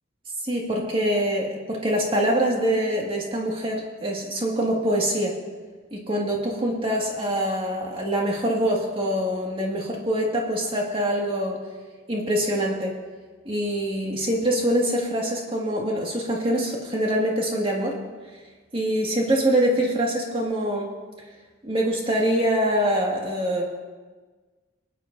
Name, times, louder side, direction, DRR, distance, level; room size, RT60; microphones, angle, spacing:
voice 1, 0.4-5.3 5.9-11.6 12.1-12.9 13.5-18.0 18.7-20.9 21.6-23.6, equal, 25° right, -2 dB, 1.9 m, -24 dB
27.0 x 9.6 x 2.6 m, 1.4 s
head